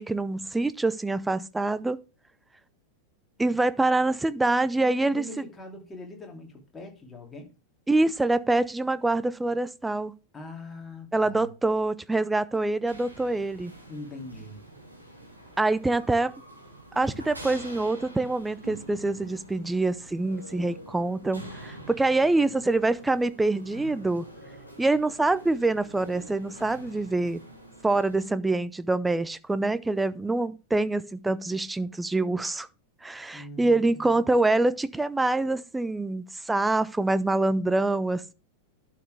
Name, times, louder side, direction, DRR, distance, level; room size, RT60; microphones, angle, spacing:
voice 1, 0.0-2.0 3.4-5.3 7.9-10.1 11.1-13.7 15.6-16.3 17.0-24.3 24.8-27.4 27.8-32.7 33.0-38.3, right 2 dB, 10° right, 0.6 m, -25 dB
voice 2, 4.8-7.5 10.3-11.5 13.9-14.6 21.8-22.1 33.3-34.2, left 1 dB, 15° left, 2.8 m, -42 dB
sound 1, 12.9-28.3, right 1 dB, 85° right, 3.1 m, -46 dB
11.5 x 6.7 x 3.3 m
figure-of-eight pair, 90°, 0 cm